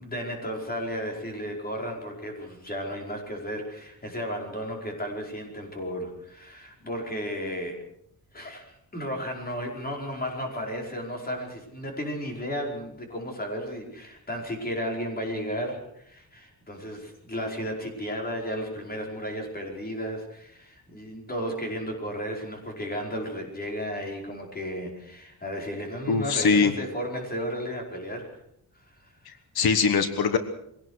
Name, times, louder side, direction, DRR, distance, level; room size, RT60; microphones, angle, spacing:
voice 1, 0.0-7.8 8.3-28.3 28.7-29.3, equal, 25° left, 1 dB, 4.9 m, -34 dB
voice 2, 26.1-26.7 29.3-30.4, left 5 dB, 80° left, 10 dB, 1.4 m, -22 dB
23.0 x 17.5 x 6.5 m, 0.73 s
wide cardioid pair, 170°, 37 cm